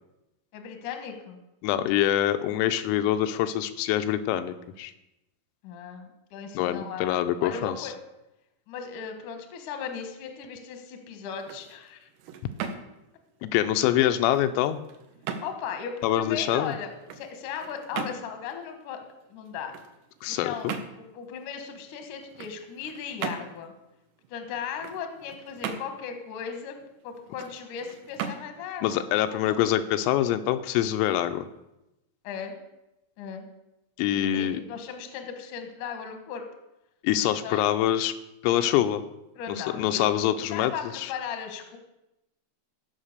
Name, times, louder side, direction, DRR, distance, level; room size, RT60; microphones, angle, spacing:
voice 1, 0.5-1.4 5.6-7.9 8.7-12.1 15.4-19.0 19.3-19.7 20.3-23.7 24.3-26.8 27.0-29.6 32.2-32.6 33.2-33.5 34.1-36.4 37.4-37.6 39.4-41.8, left 7 dB, 70° left, 5 dB, 1.9 m, -37 dB
voice 2, 1.6-4.9 6.6-7.9 13.4-14.8 16.0-16.7 20.2-20.7 28.8-31.5 34.0-34.6 37.0-38.1 38.4-39.0 39.5-41.1, left 12 dB, 85° left, 9 dB, 3.3 m, -25 dB
sound 1, 11.3-30.1, right 7 dB, 75° right, 2.5 m, -41 dB
15.5 x 5.7 x 6.7 m, 0.92 s
omnidirectional pair, 6.0 m